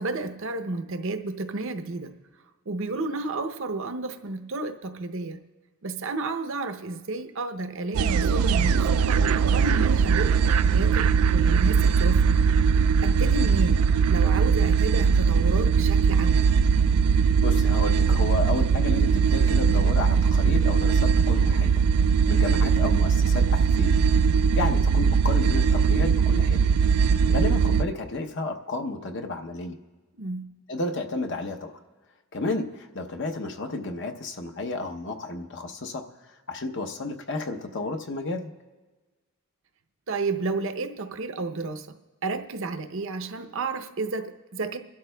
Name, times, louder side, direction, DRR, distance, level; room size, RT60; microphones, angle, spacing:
voice 1, 0.0-2.1 2.7-5.4 5.8-12.2 13.0-16.5 30.2-30.5 40.1-42.0 42.2-44.8, right 3 dB, 60° right, 7 dB, 0.7 m, -32 dB
sound 1, 7.9-27.8, right 6 dB, 80° right, 0.3 m, -20 dB
voice 2, 17.4-21.7 22.3-24.0 24.5-26.7 27.3-29.8 30.7-31.8 32.3-36.1 36.5-38.5, left 2 dB, 55° left, 5 dB, 0.8 m, -32 dB
27.5 x 12.0 x 2.2 m, 1.3 s
head